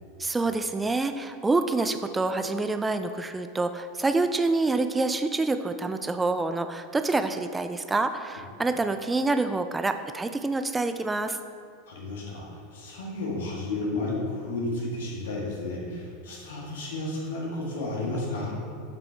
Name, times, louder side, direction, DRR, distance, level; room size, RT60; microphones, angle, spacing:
voice 1, 0.2-11.4, right 3 dB, 15° right, 9 dB, 0.3 m, -27 dB
voice 2, 11.9-12.5 12.7-18.5, left 2 dB, 70° left, -3 dB, 1.7 m, -32 dB
7.1 x 5.8 x 3.4 m, 2.3 s
figure-of-eight pair, 85°, 0 cm